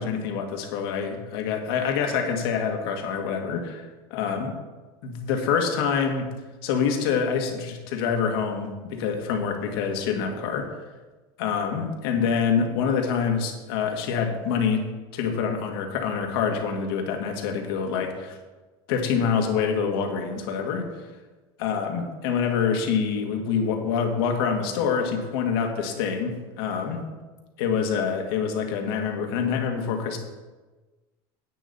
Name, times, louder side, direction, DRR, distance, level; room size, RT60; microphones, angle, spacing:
voice 1, 0.0-3.9 4.1-4.5 5.0-6.3 6.6-10.7 11.4-14.9 15.1-18.4 18.9-20.9 21.6-27.0 27.6-30.2, left 6 dB, 80° left, 3 dB, 1.8 m, -26 dB
10.0 x 8.7 x 4.1 m, 1.2 s
supercardioid pair, 125°, 12 cm